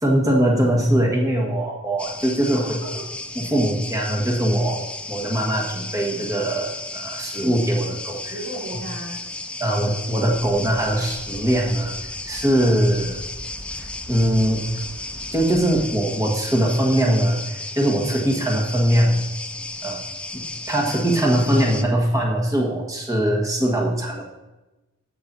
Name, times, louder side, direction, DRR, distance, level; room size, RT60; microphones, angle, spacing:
voice 1, 0.0-2.7 3.3-8.4 8.7-8.8 9.6-11.9 12.3-13.2 14.1-14.7 15.3-19.2 19.8-20.0 20.3-24.2, right 1 dB, 15° right, -2 dB, 1.5 m, -21 dB
sound 1, 2.0-21.8, left 2 dB, 5° left, 0.3 m, -34 dB
voice 2, 2.5-3.0 8.3-9.2, right 1 dB, 55° right, -6 dB, 3.3 m, -34 dB
sound 2, 10.3-15.9, equal, 85° left, 1.4 m, -41 dB
14.5 x 5.8 x 2.7 m, 1.0 s
head